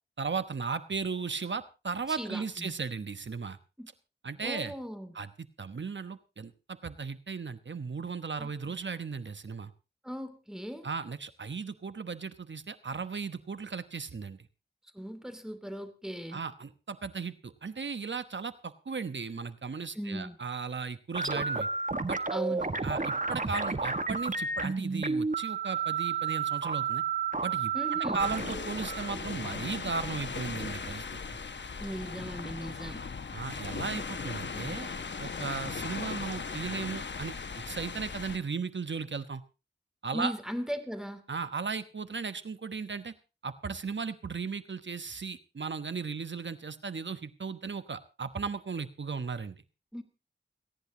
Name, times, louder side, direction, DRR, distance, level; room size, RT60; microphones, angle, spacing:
voice 1, 0.2-3.6 4.2-4.7 5.1-9.7 10.8-14.4 16.3-21.7 22.1-22.2 22.8-27.0 27.4-31.4 33.3-34.9 35.2-37.3 37.7-39.4 40.0-40.3 41.3-43.1 43.4-49.6, right 5 dB, 80° right, 12 dB, 1.1 m, -36 dB
voice 2, 2.1-2.7 3.8-3.9 4.4-5.1 8.4-8.8 10.0-10.9 14.9-16.4 19.9-20.4 22.3-22.7 27.7-28.2 31.8-33.0 40.1-41.2 49.9-50.0, equal, 5° right, 8 dB, 2.8 m, -38 dB
sound 1, 21.1-30.1, right 5 dB, 45° right, 1.5 m, -32 dB
sound 2, 28.2-38.4, left 5 dB, 75° left, 1.0 m, -38 dB
29.5 x 10.5 x 2.8 m, 0.30 s
wide cardioid pair, 40°, 19 cm